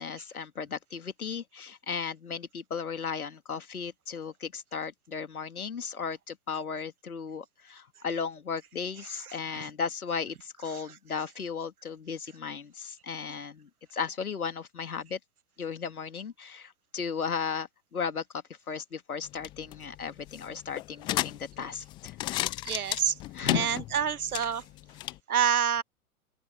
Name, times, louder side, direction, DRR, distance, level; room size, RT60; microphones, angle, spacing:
voice 1, 0.0-15.2 15.6-18.2 18.7-22.2 23.3-23.8, left 6 dB, 75° left, 2.2 m, -35 dB
sound 1, 19.2-25.2, left 17 dB, 10° left, 0.4 m, -35 dB
voice 2, 22.6-23.1 23.5-24.6 25.3-25.8, right 8 dB, 75° right, 1.0 m, -27 dB
open air
figure-of-eight pair, 105°, 44 cm